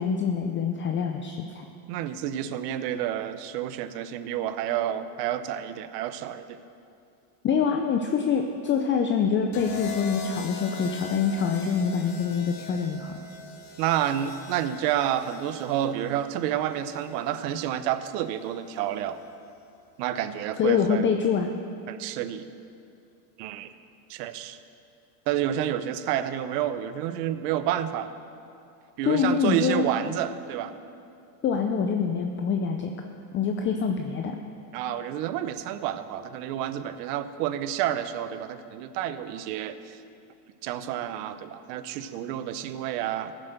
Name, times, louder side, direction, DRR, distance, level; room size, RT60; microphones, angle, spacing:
voice 1, 0.0-1.6 7.4-13.2 20.6-21.5 29.0-29.9 31.4-33.1 33.3-34.4, left 6 dB, 25° left, 4 dB, 0.5 m, -25 dB
voice 2, 1.9-6.6 13.8-19.2 20.0-21.1 21.9-22.4 23.4-23.7 24.1-24.6 25.3-28.1 29.0-30.7 34.7-40.0 40.6-43.3, right 11 dB, 75° right, 12 dB, 0.9 m, -29 dB
sound 1, 9.5-17.7 18.9-19.3, left 6 dB, 45° left, 1.5 m, -41 dB
14.5 x 7.5 x 6.7 m, 2.5 s
supercardioid pair, 130°, 49 cm